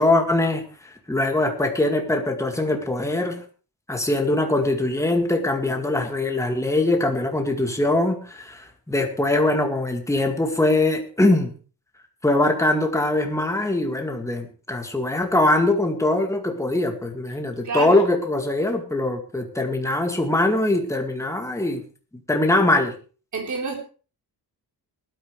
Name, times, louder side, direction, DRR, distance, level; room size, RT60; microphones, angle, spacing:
voice 1, 0.0-3.4 3.9-11.5 12.2-21.8 22.3-22.9, left 2 dB, 5° left, 3 dB, 2.1 m, -22 dB
voice 2, 17.6-18.0 23.3-23.7, right 4 dB, 45° right, 2 dB, 4.1 m, -27 dB
19.0 x 12.5 x 3.3 m, 0.36 s
wide cardioid pair, 170°, 39 cm